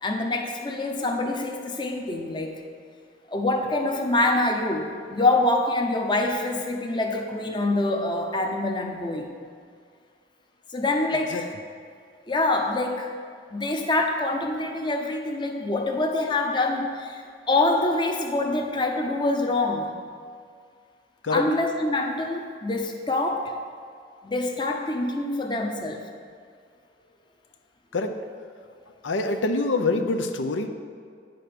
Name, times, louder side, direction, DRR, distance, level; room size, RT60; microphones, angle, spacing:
voice 1, 0.0-2.6 3.3-9.3 10.7-11.5 12.3-13.1 13.5-17.2 17.5-19.9 21.3-23.5 24.2-26.0, left 2 dB, 25° left, 3 dB, 0.7 m, -25 dB
voice 2, 29.0-30.7, left 3 dB, 90° left, 6 dB, 0.6 m, -25 dB
9.3 x 5.1 x 5.9 m, 2.2 s
head